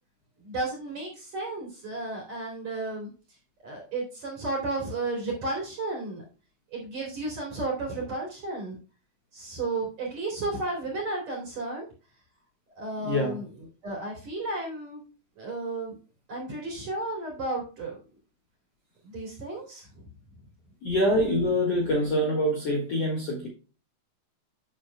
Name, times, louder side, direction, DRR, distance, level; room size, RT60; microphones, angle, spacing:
voice 1, 0.4-3.1 3.6-6.2 6.7-8.8 9.3-11.9 12.8-13.5 13.8-15.0 15.4-16.0 16.3-18.0 19.0-20.1, right 2 dB, 40° right, -2 dB, 3.5 m, -33 dB
voice 2, 13.0-13.4 20.8-23.5, equal, 75° left, 0 dB, 1.4 m, -25 dB
10.5 x 7.4 x 2.2 m, 0.34 s
omnidirectional pair, 5.6 m